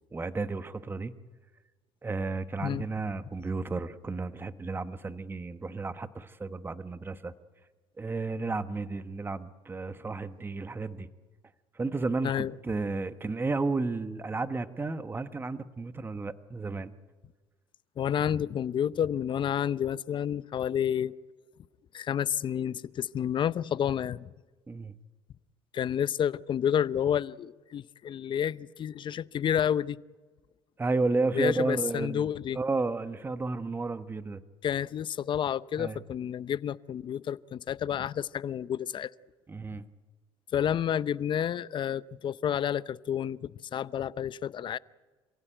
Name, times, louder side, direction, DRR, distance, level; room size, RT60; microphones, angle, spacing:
voice 1, 0.1-1.1 2.0-7.3 8.0-11.1 11.7-16.9 24.7-24.9 30.8-32.3 32.5-34.4 35.8-36.0 39.5-39.8, right 3 dB, 20° right, 1.1 m, -32 dB
voice 2, 18.0-21.1 21.9-24.3 25.7-30.0 31.3-32.6 34.6-39.1 40.5-44.8, left 9 dB, 45° left, 0.7 m, -30 dB
27.0 x 16.5 x 9.0 m
supercardioid pair, 90°, 12 cm